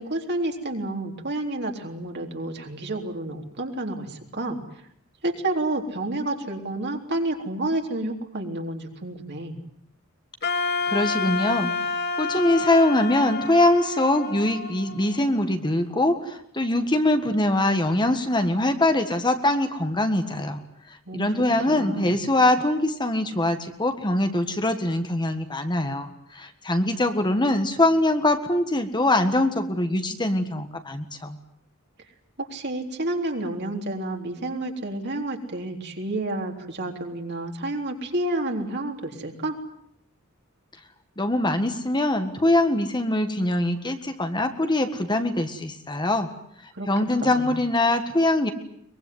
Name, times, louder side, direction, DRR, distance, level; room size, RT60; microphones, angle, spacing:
voice 1, 0.0-4.6 5.2-9.6 21.1-21.3 21.6-22.1 32.4-39.6 46.7-47.5, right 2 dB, 55° right, 3 dB, 3.8 m, -30 dB
Wind instrument woodwind instrument, 10.4-15.5, left 4 dB, 50° left, 2.4 m, -29 dB
voice 2, 10.9-11.7 12.2-20.6 21.1-31.4 41.2-46.3 46.9-48.5, left 1 dB, 20° left, 7 dB, 1.7 m, -23 dB
23.5 x 22.0 x 9.4 m, 0.70 s
head